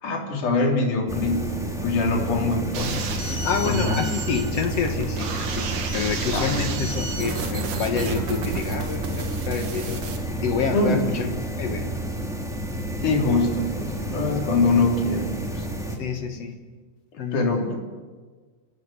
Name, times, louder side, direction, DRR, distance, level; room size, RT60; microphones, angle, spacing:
voice 1, 0.0-3.0 3.6-4.0 6.3-6.5 10.7-11.1 13.0-15.6 16.4-16.5 17.3-17.8, left 3 dB, 45° left, 0 dB, 4.7 m, -23 dB
sound 1, 1.1-16.0, right 1 dB, ahead, 2.8 m, -30 dB
sound 2, 2.7-10.2, right 4 dB, 50° right, 3.1 m, -32 dB
voice 2, 3.2-10.1 10.4-11.3 11.6-11.9 16.0-16.6 17.2-17.7, left 5 dB, 75° left, 5 dB, 1.4 m, -28 dB
28.5 x 18.5 x 8.1 m, 1.4 s
omnidirectional pair, 5.0 m